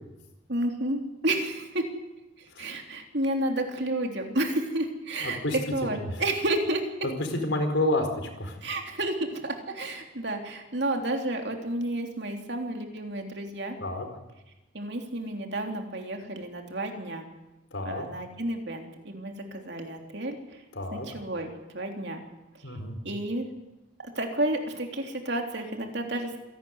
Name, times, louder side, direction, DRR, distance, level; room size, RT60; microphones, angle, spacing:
voice 1, 0.5-1.8 2.4-6.8 8.6-13.8 14.7-17.3 17.8-20.6 20.9-22.2 23.0-23.5 24.0-26.4, right 1 dB, 60° right, 3 dB, 3.4 m, -31 dB
voice 2, 5.2-5.6 5.8-6.2 7.0-8.6 13.8-14.1 17.7-18.0 20.7-21.1 22.6-23.0, left 1 dB, 70° left, 5 dB, 4.5 m, -29 dB
27.0 x 12.0 x 9.6 m, 0.99 s
head